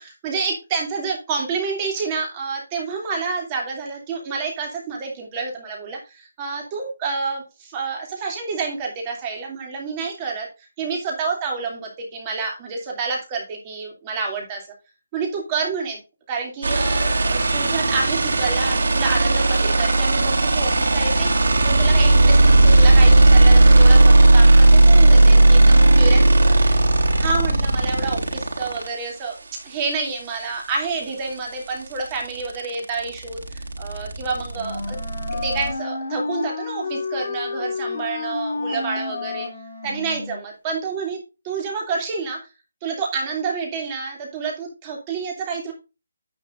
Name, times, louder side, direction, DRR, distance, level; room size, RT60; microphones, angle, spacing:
voice 1, 0.0-10.5 10.8-14.7 15.1-16.0 16.3-26.6 27.2-29.3 29.6-35.0 35.3-39.5 39.8-41.2 41.4-42.4 42.8-45.7, right 4 dB, 15° right, 1 dB, 2.7 m, -28 dB
sound 1, 16.6-28.9 31.0-31.1 31.3-35.7, right 2 dB, 70° right, 3.7 m, -15 dB
Wind instrument woodwind instrument, 34.5-40.5, left 3 dB, 50° left, 3.6 m, -30 dB
10.0 x 9.0 x 2.5 m, 0.28 s
hypercardioid pair, 175°, 0 cm